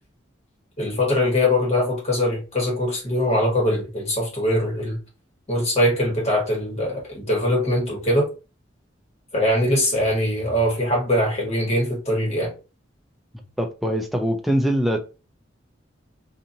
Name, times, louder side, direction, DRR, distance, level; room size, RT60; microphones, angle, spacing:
voice 1, 0.8-5.0 5.5-8.3 9.3-12.5, left 1 dB, 35° left, 1.4 m, -22 dB
voice 2, 13.3-15.0, equal, ahead, 0.4 m, -23 dB
2.6 x 2.6 x 2.7 m
head